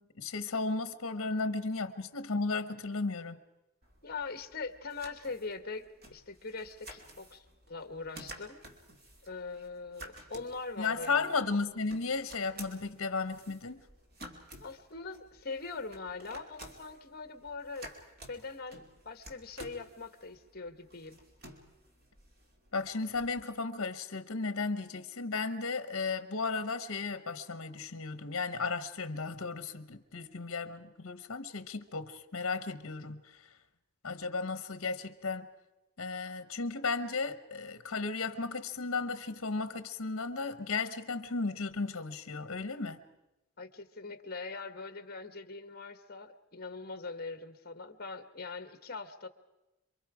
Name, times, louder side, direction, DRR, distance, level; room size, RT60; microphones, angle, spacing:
voice 1, 0.0-3.4 10.8-13.8 22.7-33.5 34.0-35.5 36.0-43.0, left 4 dB, 65° left, 12 dB, 1.1 m, -35 dB
sound 1, 3.8-23.4, right 1 dB, 45° right, 2.6 m, -53 dB
voice 2, 4.0-8.6 9.2-11.3 14.6-17.9 18.3-21.2 43.6-49.3, left 4 dB, 45° left, 10 dB, 1.3 m, -42 dB
27.5 x 23.5 x 5.0 m, 1.0 s
head